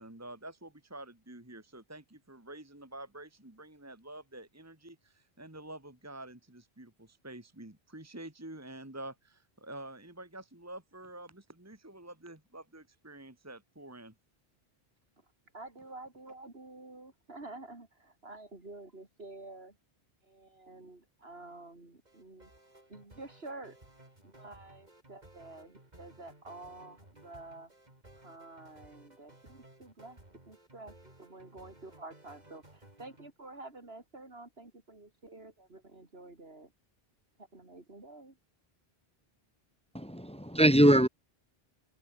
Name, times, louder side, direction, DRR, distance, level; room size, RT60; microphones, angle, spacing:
voice 1, 0.0-14.1, right 1 dB, 15° right, 2.0 m, -48 dB
voice 2, 15.5-19.7 20.3-22.5 22.9-23.8 24.2-27.7 28.2-36.7 37.4-38.4, right 2 dB, 75° right, 4.2 m, -49 dB
sound 1, 22.1-33.3, right 1 dB, 45° right, 4.4 m, -58 dB
voice 3, 39.9-41.1, right 1 dB, 5° left, 0.6 m, -22 dB
omnidirectional pair, 1.0 m